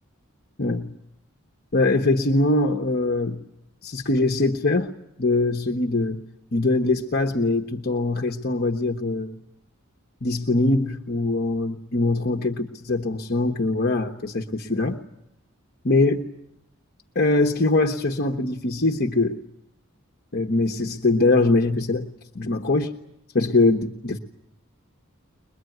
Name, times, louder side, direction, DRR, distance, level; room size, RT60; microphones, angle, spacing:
voice 1, 0.6-0.9 1.7-3.4 3.8-4.9 5.2-6.2 6.5-9.4 10.2-15.0 15.8-16.3 17.1-19.4 20.3-22.1 22.3-22.9 23.3-24.2, left 2 dB, 45° left, 2 dB, 1.1 m, -22 dB
22.5 x 22.0 x 9.2 m, 0.84 s
head